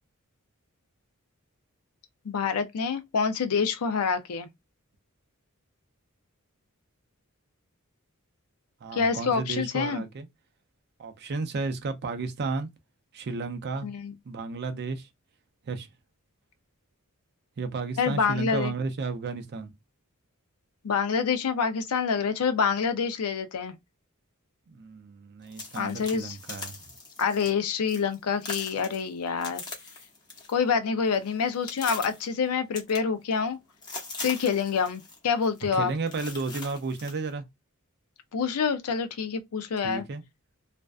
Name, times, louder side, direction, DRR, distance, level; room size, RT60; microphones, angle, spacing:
voice 1, 2.2-4.5 8.9-10.0 13.8-14.1 18.0-18.7 20.8-23.7 25.7-26.4 27.2-29.6 30.5-33.6 34.2-35.9 38.3-40.0, left 6 dB, 80° left, 0.5 m, -27 dB
voice 2, 8.8-10.3 11.0-12.7 13.1-13.9 14.3-15.1 15.7-15.9 17.6-19.7 24.7-26.8 35.7-37.4 39.8-40.2, right 4 dB, 50° right, 0.4 m, -33 dB
sound 1, 25.4-27.5 27.9-28.2 28.4-30.6 30.9-32.3 32.7-33.5 33.8-35.2 35.4-35.6 36.1-37.1, left 3 dB, 20° left, 0.7 m, -41 dB
2.5 x 2.2 x 2.3 m
head